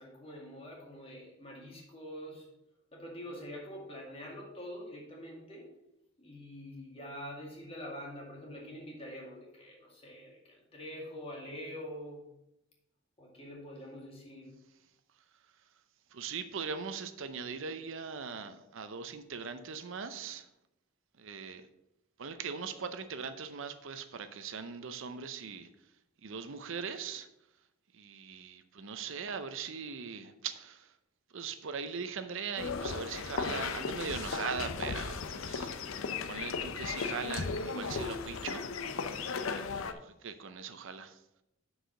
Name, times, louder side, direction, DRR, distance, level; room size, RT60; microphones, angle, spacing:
voice 1, 0.0-2.5 2.9-5.7 6.2-12.2 13.2-14.5, equal, 30° left, -2 dB, 2.2 m, -45 dB
voice 2, 16.1-20.5 21.2-21.7 22.2-25.7 26.2-27.3 27.9-30.9 31.3-36.0 36.3-38.7 39.2-41.2, right 5 dB, 65° right, 10 dB, 0.6 m, -40 dB
sound 1, 32.6-39.9, left 5 dB, 70° left, 0.6 m, -36 dB
6.4 x 4.8 x 6.3 m, 0.85 s
head